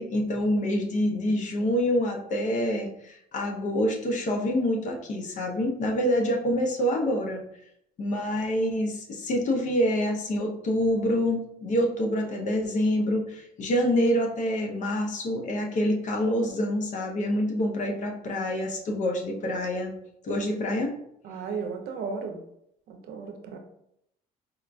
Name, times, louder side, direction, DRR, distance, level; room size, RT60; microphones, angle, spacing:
voice 1, 0.0-7.4 8.0-19.9 20.2-20.9, equal, 45° left, 1 dB, 0.6 m, -26 dB
voice 2, 21.2-22.4 22.9-23.6, right 5 dB, 75° right, 4 dB, 0.6 m, -35 dB
4.4 x 2.4 x 2.2 m, 0.77 s
cardioid pair, 110°, 17 cm